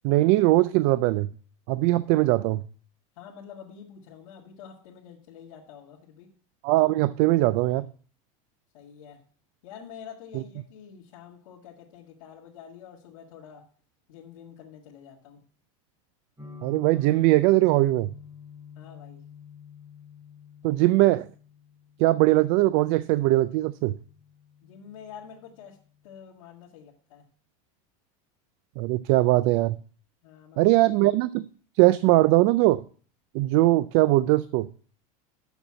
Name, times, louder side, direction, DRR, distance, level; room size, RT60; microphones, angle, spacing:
voice 1, 0.0-1.3 1.7-2.6 6.6-7.9 10.3-10.4 16.6-18.1 20.6-21.3 22.0-24.0 28.8-29.8 30.6-31.4 31.8-32.8 33.3-34.7, right 18 dB, 50° right, 0.4 m, -21 dB
voice 2, 3.2-6.3 8.7-9.2 9.6-13.6 14.1-15.4 18.8-19.2 24.6-25.8 26.0-27.3 30.2-30.7, left 8 dB, 80° left, 1.9 m, -47 dB
sound 1, 16.4-26.2, left 6 dB, 15° right, 3.5 m, -50 dB
7.0 x 5.9 x 7.4 m
supercardioid pair, 150°, 17 cm